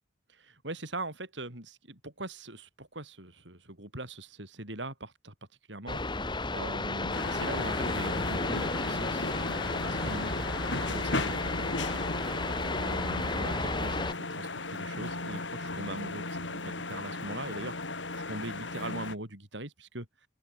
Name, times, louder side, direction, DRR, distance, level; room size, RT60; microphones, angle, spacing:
voice 1, 0.3-5.3 5.7-11.8 12.5-17.8 18.1-20.1, right 2 dB, 75° right, 7.8 m, -41 dB
sound 1, 5.9-14.1, left 2 dB, 25° left, 2.5 m, -33 dB
sound 2, 7.1-19.2, left 2 dB, 80° left, 6.9 m, -36 dB
head